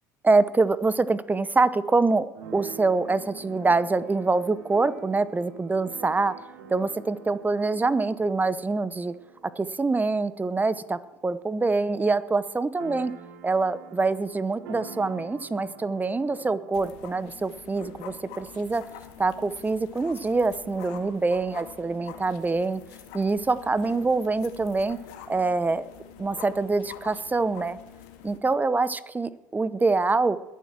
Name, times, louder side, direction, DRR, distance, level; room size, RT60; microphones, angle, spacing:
voice 1, 0.2-2.3 2.5-6.3 6.7-9.1 9.6-13.1 13.4-18.8 19.2-22.8 23.1-25.0 25.3-25.9 26.2-27.8 28.2-30.4, right 3 dB, 15° right, 16 dB, 0.8 m, -25 dB
Keyboard (musical), 2.3-11.9 12.2-12.3 12.5-16.9, right 5 dB, 70° right, 2.6 m, -46 dB
sound 1, 16.7-28.4, left 9 dB, 65° left, 2.0 m, -46 dB
21.5 x 7.5 x 6.0 m, 0.95 s
hypercardioid pair, 70°, 11 cm